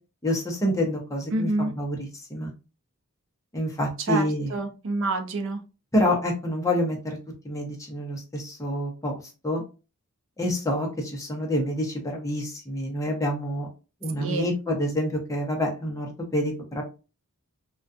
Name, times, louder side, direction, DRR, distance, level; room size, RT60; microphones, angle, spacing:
voice 1, 0.2-2.5 3.5-4.6 5.9-7.2 7.4-9.6 10.4-13.7 14.0-16.8, left 1 dB, 15° left, 0 dB, 0.6 m, -27 dB
voice 2, 1.3-1.7 4.1-4.2 4.5-5.6 14.2-14.5, right 2 dB, 60° right, 5 dB, 0.5 m, -27 dB
2.3 x 2.3 x 2.5 m, 0.32 s
head